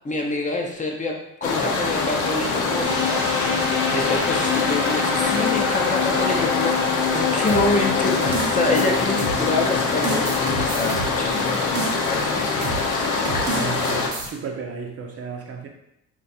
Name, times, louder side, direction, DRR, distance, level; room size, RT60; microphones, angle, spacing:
voice 1, 0.0-2.9 3.9-6.8 7.1-10.3 10.6-12.9, left 2 dB, 25° left, 1 dB, 0.5 m, -26 dB
sound 1, 1.4-14.1, left 4 dB, 85° left, 0.6 m, -24 dB
sound 2, 2.8-12.7, left 6 dB, 50° left, 0.8 m, -28 dB
sound 3, 7.5-9.6 10.0-12.2 12.6-12.9 13.2-14.3, right 5 dB, 75° right, 0.9 m, -30 dB
voice 2, 13.5-15.7, right 5 dB, 50° right, 2 dB, 0.6 m, -33 dB
2.5 x 2.3 x 4.1 m, 0.80 s
cardioid pair, 90°, 30 cm